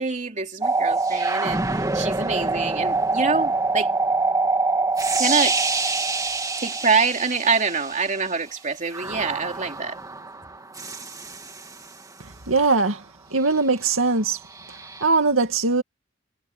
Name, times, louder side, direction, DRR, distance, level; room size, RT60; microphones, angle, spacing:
voice 1, 0.0-1.6 1.9-3.9 5.2-5.6 6.6-10.0, right 4 dB, 40° right, 3.2 m, -25 dB
sound 1, 0.6-8.2 8.9-11.9 14.6-15.0, right 3 dB, 15° right, 2.3 m, -25 dB
voice 2, 12.5-13.0 13.3-14.4 15.0-15.8, right 3 dB, 85° right, 2.3 m, -20 dB
head